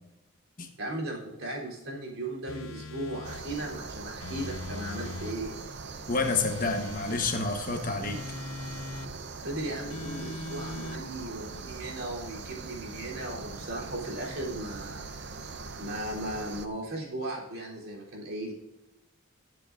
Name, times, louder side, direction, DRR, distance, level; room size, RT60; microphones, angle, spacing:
voice 1, 0.8-5.5 9.4-15.3 15.8-18.5, right 1 dB, 75° right, -3 dB, 3.5 m, -37 dB
sound 1, 2.5-3.5 4.2-5.4 6.2-7.4 8.0-9.1 9.9-11.0, left 3 dB, 75° left, 0.6 m, -40 dB
sound 2, 3.2-16.7, right 4 dB, 50° right, 0.7 m, -41 dB
voice 2, 6.1-8.2, left 3 dB, 40° left, 5 dB, 1.1 m, -29 dB
19.0 x 7.8 x 2.6 m, 1.0 s
head